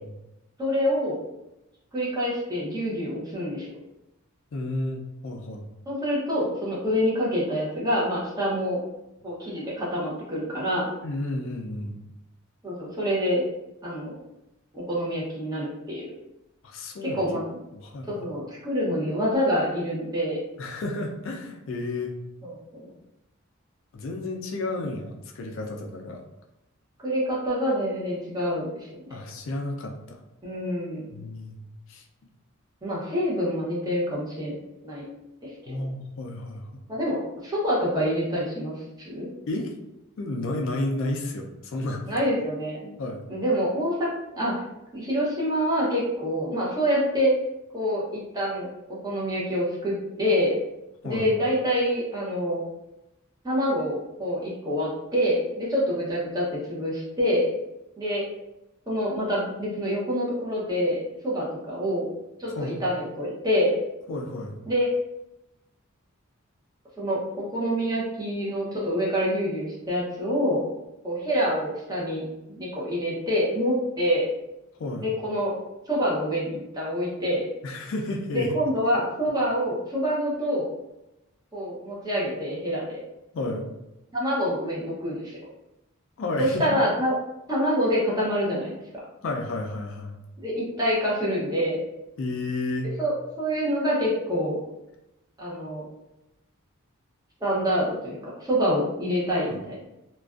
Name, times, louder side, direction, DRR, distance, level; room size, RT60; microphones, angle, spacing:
voice 1, 0.6-1.2 1.9-3.7 5.9-8.8 9.2-10.9 12.6-13.4 13.8-14.2 14.7-16.0 17.0-17.4 18.1-20.4 22.4-22.9 27.0-29.2 30.4-31.1 32.8-34.6 34.8-35.1 35.4-35.5 36.9-39.3 42.1-42.9 43.3-44.6 44.9-47.3 47.7-48.7 49.0-50.5 51.0-52.6 53.4-57.4 58.0-58.2 58.9-62.1 62.4-63.7 64.7-64.9 67.0-70.6 71.0-74.3 75.0-75.5 75.9-77.4 78.3-80.7 81.5-83.0 84.1-85.4 86.4-87.1 87.5-88.7 90.4-91.8 93.0-94.6 95.4-95.9 97.4-99.8, equal, 20° right, -6 dB, 0.6 m, -26 dB
voice 2, 4.5-5.7 11.0-12.0 16.6-17.2 17.7-18.3 20.6-22.1 23.9-26.2 29.1-30.2 31.1-31.6 31.9-32.0 35.7-36.8 39.5-39.7 40.2-42.1 43.0-43.2 51.0-51.3 62.6-62.8 64.1-64.6 74.8-75.1 77.6-78.5 83.3-83.6 86.2-86.8 89.2-90.2 92.2-92.9, left 2 dB, 65° left, 2 dB, 0.4 m, -31 dB
2.4 x 2.2 x 2.3 m, 0.92 s
head